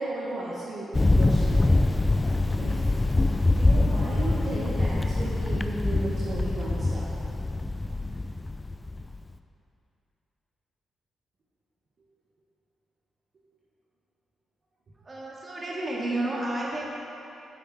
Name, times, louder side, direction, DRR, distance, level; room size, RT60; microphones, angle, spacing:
voice 1, 0.0-1.8 2.6-3.2 3.6-7.2, right 2 dB, 55° right, -7 dB, 1.6 m, -35 dB
Thunder, 0.9-9.2, left 2 dB, 25° left, 0.5 m, -24 dB
voice 2, 15.0-16.8, right 1 dB, 35° right, -5 dB, 2.3 m, -31 dB
9.3 x 7.2 x 4.4 m, 2.8 s
supercardioid pair, 55°, 0 cm